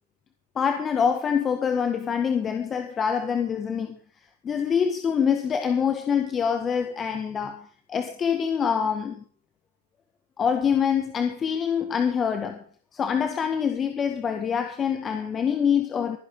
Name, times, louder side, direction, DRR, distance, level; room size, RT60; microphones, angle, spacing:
voice 1, 0.6-4.0 4.4-9.2 10.4-12.6 12.9-16.2, left 7 dB, 25° left, 1.8 m, -25 dB
24.5 x 11.0 x 3.8 m
hypercardioid pair, 120°, 0 cm